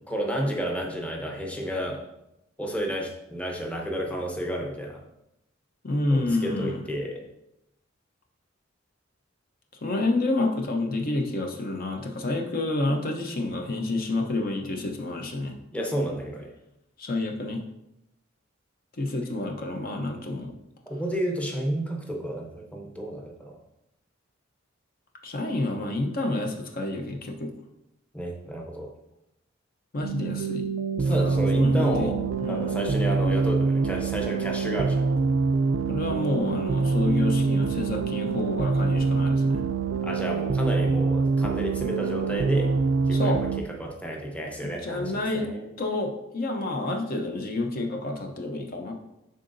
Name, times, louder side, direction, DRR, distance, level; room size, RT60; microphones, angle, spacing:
voice 1, 0.1-2.1 2.6-5.0 6.1-7.2 15.7-16.5 20.9-23.6 28.1-28.9 31.0-32.2 32.5-35.1 40.0-42.7 43.1-43.5 43.8-45.8, right 1 dB, 5° left, 0 dB, 0.8 m, -31 dB
voice 2, 5.8-6.8 9.8-15.6 17.0-17.6 19.0-20.5 25.2-27.5 29.9-30.7 31.1-32.1 32.4-32.8 35.9-39.6 43.1-43.4 44.6-45.5 45.8-48.9, left 2 dB, 45° left, 2 dB, 0.7 m, -29 dB
sound 1, 30.0-43.6, right 4 dB, 80° right, 0.4 m, -25 dB
10.5 x 3.8 x 2.6 m, 0.86 s
head